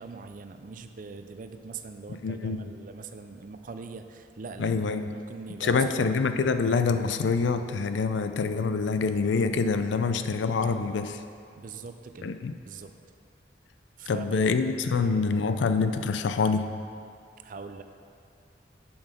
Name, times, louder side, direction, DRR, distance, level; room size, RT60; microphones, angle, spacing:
voice 1, 0.0-6.1 11.6-12.3 12.7-12.9 14.0-14.5 14.9-15.4 17.4-17.8, right 4 dB, 50° right, 8 dB, 0.4 m, -42 dB
voice 2, 2.2-2.6 4.6-5.0 5.6-11.2 12.2-12.5 14.1-16.8, left 4 dB, 90° left, 9 dB, 0.4 m, -26 dB
7.4 x 6.2 x 5.0 m, 2.4 s
head